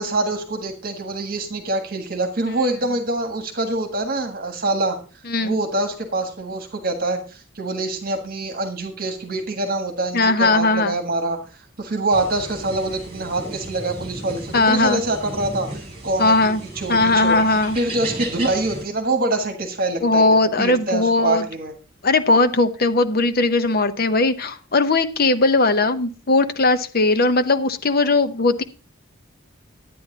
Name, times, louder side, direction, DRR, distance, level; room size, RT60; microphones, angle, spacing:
voice 1, 0.0-5.0 5.4-11.4 11.8-17.3 17.7-21.7, right 2 dB, 45° right, 5 dB, 1.6 m, -25 dB
voice 2, 5.3-5.6 10.1-11.0 14.5-15.0 16.2-16.6 16.9-17.8 20.0-21.5 22.0-28.6, left 2 dB, 45° left, 10 dB, 0.7 m, -18 dB
sound 1, 12.1-18.8, right 1 dB, 25° right, 3.2 m, -35 dB
11.0 x 9.4 x 3.9 m, 0.35 s
head